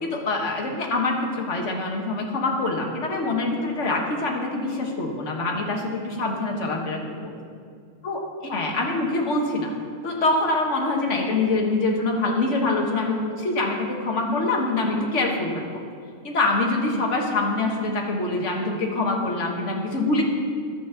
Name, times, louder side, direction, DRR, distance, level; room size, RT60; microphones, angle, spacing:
voice 1, 0.0-7.3 8.0-9.7 10.0-15.8 16.2-20.2, left 2 dB, 40° left, 1 dB, 1.3 m, -25 dB
11.5 x 6.3 x 6.9 m, 2.2 s
omnidirectional pair, 2.4 m